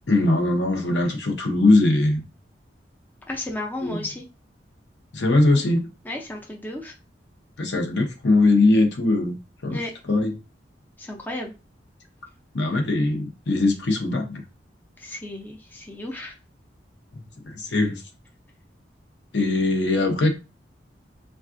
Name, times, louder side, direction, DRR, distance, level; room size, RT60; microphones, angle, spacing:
voice 1, 0.1-2.2 3.8-4.0 5.1-5.9 7.6-9.3 9.6-9.8 10.1-10.3 12.5-14.4 17.5-18.0 19.3-20.3, left 2 dB, 70° left, 0.8 m, -21 dB
voice 2, 3.3-4.2 6.0-6.9 9.7-9.9 11.0-11.5 15.0-16.4, left 1 dB, 10° left, 0.4 m, -33 dB
3.5 x 2.3 x 2.5 m
head